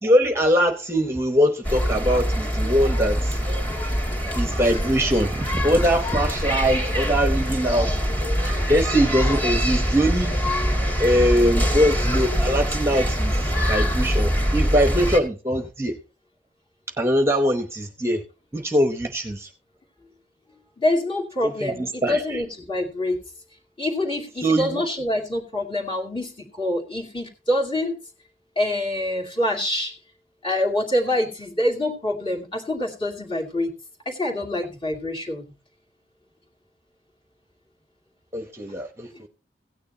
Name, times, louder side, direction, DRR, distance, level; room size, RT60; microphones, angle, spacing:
voice 1, 0.0-3.4 4.3-8.0 8.7-10.3 11.0-15.9 17.0-18.2 18.5-19.5 21.4-22.4 24.4-24.8 38.3-39.3, equal, 15° right, 6 dB, 0.9 m, -22 dB
sound 1, 1.6-15.2, equal, 10° left, 2.1 m, -24 dB
voice 2, 20.8-23.2 23.8-27.9 28.6-29.9 30.4-33.7 34.1-35.4, left 1 dB, 30° left, 0 dB, 2.6 m, -25 dB
16.5 x 9.5 x 2.8 m, 0.31 s
head